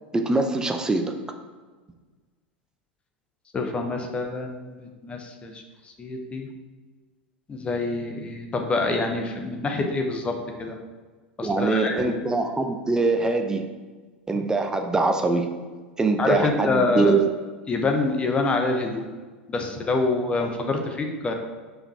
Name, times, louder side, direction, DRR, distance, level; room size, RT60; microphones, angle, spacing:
voice 1, 0.1-1.1 11.4-13.7 14.3-15.5 16.0-17.3, right 3 dB, 10° right, 5 dB, 0.6 m, -23 dB
voice 2, 3.5-5.6 6.0-6.5 7.5-10.3 10.6-10.8 11.4-12.2 16.2-17.1 17.7-19.1 19.5-21.3, left 3 dB, 20° left, 3 dB, 0.9 m, -26 dB
5.1 x 4.9 x 4.8 m, 1.4 s
figure-of-eight pair, 85°, 6 cm